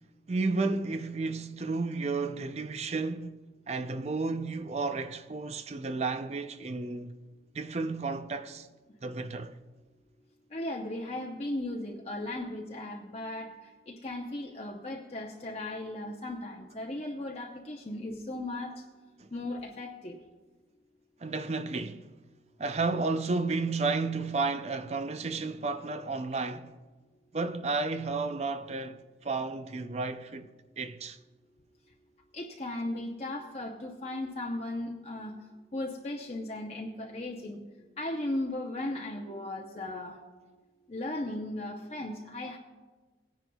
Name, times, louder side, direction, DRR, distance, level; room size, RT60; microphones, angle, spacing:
voice 1, 0.3-3.4 3.7-7.1 7.5-8.7 9.0-9.5 19.2-19.3 21.2-22.1 22.6-26.7 27.3-30.5 30.8-31.2, right 3 dB, 35° right, 0.4 m, -32 dB
voice 2, 10.5-13.5 13.9-18.7 19.3-20.2 32.3-35.3 35.7-37.6 38.0-40.2 40.9-42.6, left 1 dB, 35° left, 0.7 m, -36 dB
18.5 x 10.0 x 2.3 m
head